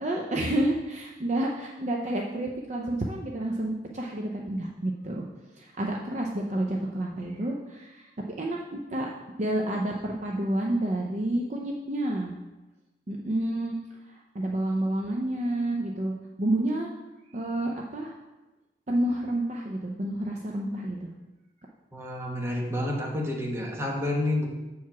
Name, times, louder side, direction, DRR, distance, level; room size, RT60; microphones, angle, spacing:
voice 1, 0.0-5.3 5.6-8.1 8.4-9.1 9.4-12.3 13.1-13.8 14.1-16.9 17.3-18.2 18.9-21.1, right 1 dB, 40° right, 0 dB, 0.6 m, -29 dB
voice 2, 21.9-24.5, left 1 dB, 15° right, -1 dB, 1.2 m, -29 dB
7.0 x 4.7 x 5.9 m, 1.1 s
head